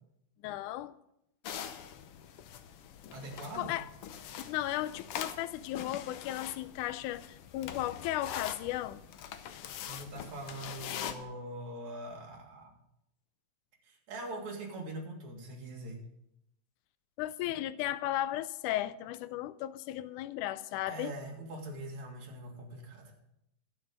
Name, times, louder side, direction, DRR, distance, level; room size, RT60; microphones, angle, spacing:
voice 1, 0.4-0.9 3.5-3.9 4.4-9.0 17.2-21.1, left 14 dB, 90° left, 2.1 m, -35 dB
sound 1, 1.4-11.2, left 9 dB, 70° left, 1.4 m, -43 dB
voice 2, 3.1-3.8 9.8-12.7 13.8-16.0 20.9-23.1, right 1 dB, 70° right, 3.3 m, -43 dB
11.5 x 8.9 x 5.3 m
omnidirectional pair, 3.4 m